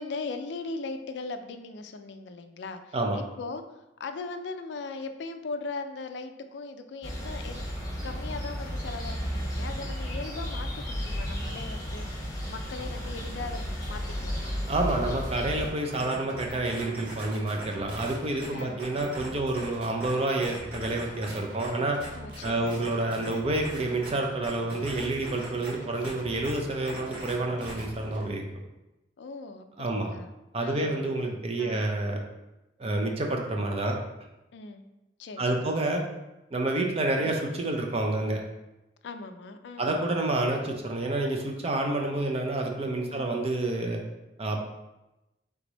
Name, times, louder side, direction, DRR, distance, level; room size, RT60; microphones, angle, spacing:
voice 1, 0.0-3.6 4.0-7.7 8.0-14.5 18.5-18.8 22.1-22.9 25.7-26.0 29.2-30.3 30.6-31.1 31.6-31.9 34.5-34.8 35.2-35.8 37.2-37.3 39.0-39.8 43.0-43.3, left 3 dB, 70° left, 8 dB, 0.4 m, -39 dB
sound 1, 7.0-15.7, equal, 20° left, 1.0 m, -33 dB
sound 2, 12.8-28.3, equal, 80° right, 0.8 m, -45 dB
voice 2, 14.7-22.0 22.4-28.4 29.8-30.1 30.5-32.2 32.8-34.0 35.4-36.0 36.5-38.4 39.8-44.0 44.4-44.6, right 2 dB, 35° right, 2 dB, 0.5 m, -28 dB
sound 3, 15.9-19.3 19.5-21.7 22.0-24.1 24.4-25.7 26.0-26.1 26.4-26.5 26.8-27.3 27.6-27.8, right 1 dB, 55° right, 1.5 m, -41 dB
3.5 x 3.3 x 3.9 m, 0.97 s
head